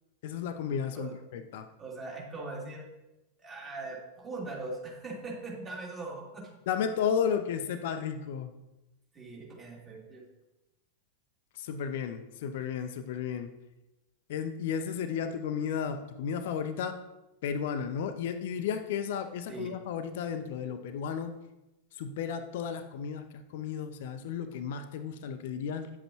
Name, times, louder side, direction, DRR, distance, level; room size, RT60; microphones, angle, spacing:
voice 1, 0.2-1.7 6.7-8.5 11.6-13.5 14.3-17.0 17.4-21.3 21.9-25.9, left 7 dB, 55° left, 9 dB, 0.6 m, -33 dB
voice 2, 1.8-2.8 3.4-6.4 9.1-10.2 19.5-19.7, right 3 dB, 20° right, -3 dB, 3.0 m, -40 dB
9.7 x 7.6 x 3.0 m, 0.98 s
figure-of-eight pair, 90°, 0 cm